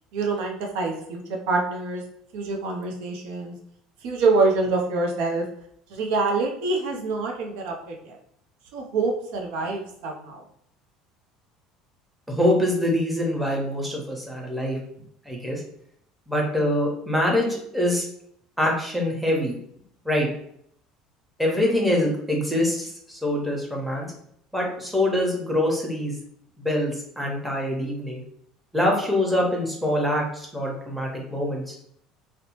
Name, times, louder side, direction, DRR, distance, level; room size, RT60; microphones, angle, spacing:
voice 1, 0.1-2.0 2.3-3.5 4.0-5.5 5.9-8.2 8.7-10.4, right 3 dB, 70° right, 1 dB, 0.5 m, -26 dB
voice 2, 12.3-14.8 15.3-15.6 16.3-18.0 18.6-19.6 20.0-20.3 21.4-24.1 24.5-26.2 26.6-28.2 28.7-31.7, left 1 dB, 5° right, -1 dB, 0.9 m, -24 dB
2.7 x 2.1 x 2.9 m, 0.68 s
hypercardioid pair, 70°, 2 cm